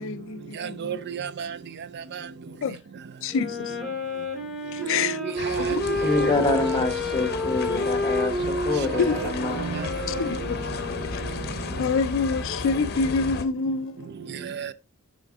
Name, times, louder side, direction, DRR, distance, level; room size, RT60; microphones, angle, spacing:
voice 1, 0.0-1.0 2.6-2.8 3.2-3.8 4.7-5.2 5.5-5.8 6.2-6.4 9.0-9.2 10.1-10.6 11.1-11.2 11.8-14.1, left 5 dB, 65° left, 0.4 m, -27 dB
voice 2, 0.6-1.6 4.8-5.8 6.2-6.6 8.9-9.3 9.6-10.2 14.4-14.7, right 7 dB, 55° right, 0.4 m, -33 dB
Wind instrument woodwind instrument, 3.3-11.6, left 2 dB, ahead, 2.1 m, -30 dB
sound 1, 5.4-13.4, left 3 dB, 50° left, 0.8 m, -33 dB
voice 3, 6.0-9.8, left 2 dB, 20° left, 1.0 m, -26 dB
6.8 x 5.0 x 3.5 m
head